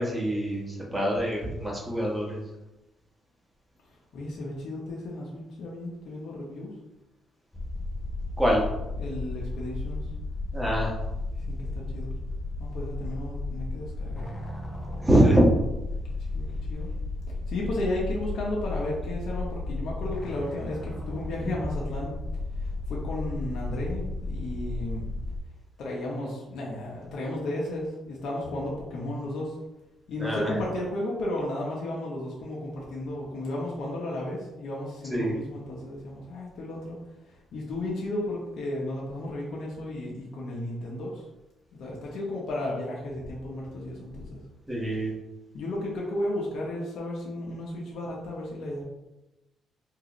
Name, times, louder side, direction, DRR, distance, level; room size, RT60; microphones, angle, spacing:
voice 1, 0.0-2.4 8.4-8.6 10.5-10.9 15.0-15.4 30.2-30.5 35.1-35.3 44.7-45.1, right 1 dB, 10° right, -3 dB, 1.1 m, -24 dB
voice 2, 4.1-6.7 9.0-10.0 11.3-12.1 12.6-14.2 16.3-16.9 17.5-22.1 22.9-25.1 25.8-29.5 30.1-37.0 37.5-41.2 41.7-44.4 45.5-48.8, left 1 dB, 70° left, -4 dB, 0.8 m, -34 dB
sound 1, 7.5-25.4, left 2 dB, 15° left, 0.6 m, -34 dB
3.7 x 2.5 x 2.9 m, 0.98 s
cardioid pair, 90°, 0 cm